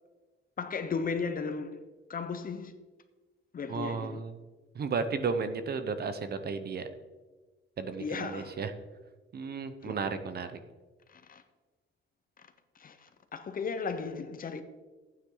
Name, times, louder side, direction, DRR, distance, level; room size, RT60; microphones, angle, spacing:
voice 1, 0.6-1.8 2.1-2.7 3.5-4.2 8.0-8.6 9.8-10.0 11.1-11.4 12.7-14.6, left 5 dB, 45° left, 1.0 m, -35 dB
voice 2, 3.7-4.3 4.7-6.8 7.8-8.7 9.3-10.5, right 5 dB, 50° right, 1.0 m, -33 dB
15.0 x 9.2 x 4.0 m
cardioid pair, 140°, 21 cm